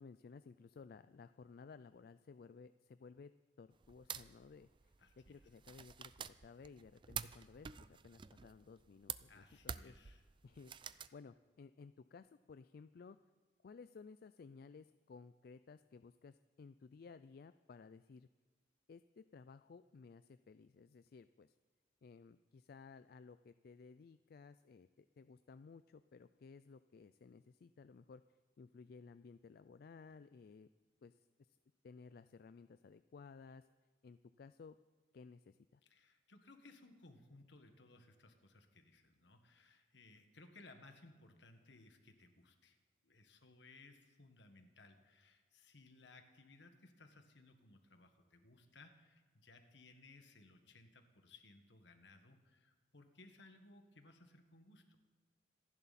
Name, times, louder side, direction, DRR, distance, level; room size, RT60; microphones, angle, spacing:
voice 1, 0.0-3.3 3.6-9.9 10.4-10.7 11.1-13.2 13.6-18.3 18.9-21.5 22.0-28.2 28.6-30.7 31.0-31.2 31.8-33.7 34.0-34.8 35.1-35.8, left 5 dB, 55° left, 12 dB, 0.3 m, -57 dB
sound 1, 3.8-11.1, right 8 dB, 25° right, 0.4 m, -49 dB
voice 2, 5.0-5.3 9.3-10.2 35.8-42.8 43.0-55.0, left 2 dB, 75° left, 6 dB, 1.6 m, -62 dB
26.5 x 11.0 x 4.2 m, 1.3 s
head